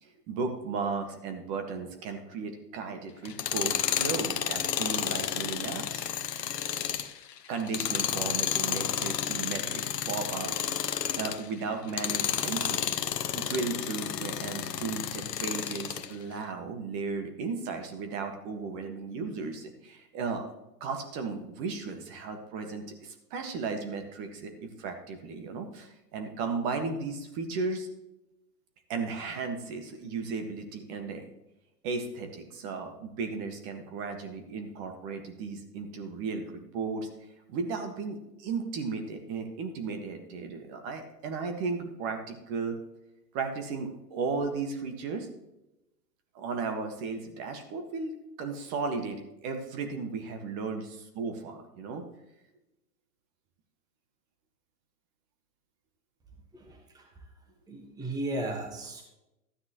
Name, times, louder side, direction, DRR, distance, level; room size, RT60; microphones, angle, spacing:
voice 1, 0.0-6.0 7.5-10.6 11.1-12.8 13.3-20.4 20.8-27.9 28.9-31.2 31.8-37.1 37.5-42.8 43.3-45.3 46.3-52.0, right 4 dB, 35° right, 5 dB, 1.7 m, -35 dB
Tools, 3.2-11.4 11.9-16.1, left 9 dB, 75° left, 1.0 m, -31 dB
voice 2, 56.5-57.1 57.7-59.0, right 1 dB, 10° right, 1 dB, 1.4 m, -35 dB
13.0 x 9.3 x 3.0 m, 0.91 s
hypercardioid pair, 125°, 49 cm